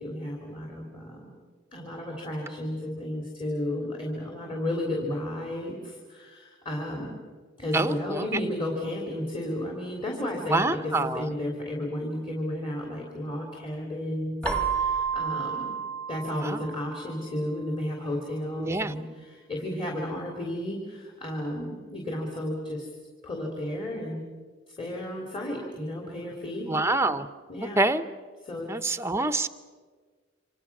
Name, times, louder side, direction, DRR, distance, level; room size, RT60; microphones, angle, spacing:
voice 1, 0.0-1.3 1.7-7.2 7.6-15.7 16.1-22.9 23.2-24.3 24.8-26.7 27.5-27.9 28.4-28.7, left 1 dB, 30° left, 0 dB, 3.4 m, -33 dB
voice 2, 7.7-8.2 10.5-11.3 16.4-16.6 18.6-18.9 26.7-27.3 27.8-28.0 28.7-29.5, right 2 dB, 15° right, 11 dB, 0.8 m, -26 dB
Keyboard (musical), 14.4-17.2, right 6 dB, 5° left, 1.6 m, -30 dB
28.0 x 25.5 x 6.1 m, 1.5 s
head